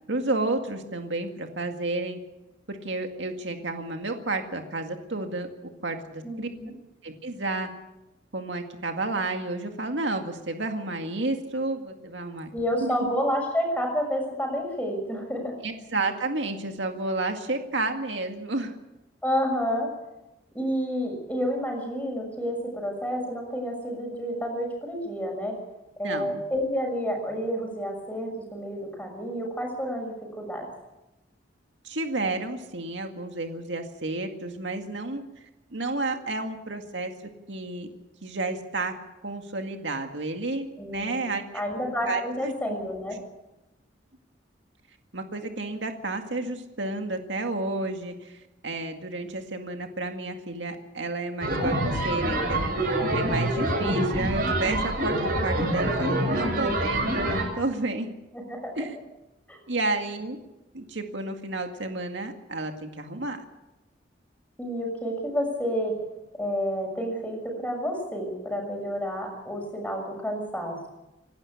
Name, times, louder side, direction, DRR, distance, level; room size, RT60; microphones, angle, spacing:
voice 1, 0.1-2.2 2.7-5.5 5.8-6.5 7.0-7.7 8.3-12.5 12.8-13.1 15.6-18.7 26.0-26.4 31.8-35.2 35.7-37.1 37.5-37.9 38.2-38.9 39.2-41.5 41.8-42.8 45.1-58.2 58.8-59.0 59.7-60.4 60.7-63.4, right 2 dB, 80° right, 4 dB, 2.1 m, -31 dB
voice 2, 6.2-6.7 12.5-15.5 19.2-19.9 20.5-25.6 26.0-30.6 40.8-41.2 41.5-43.2 58.3-58.8 59.5-59.6 64.6-66.0 66.4-70.9, equal, 10° left, 2 dB, 6.7 m, -30 dB
sound 1, 51.4-57.4, right 1 dB, 55° right, 7.0 m, -26 dB
26.5 x 12.5 x 8.7 m, 0.99 s
head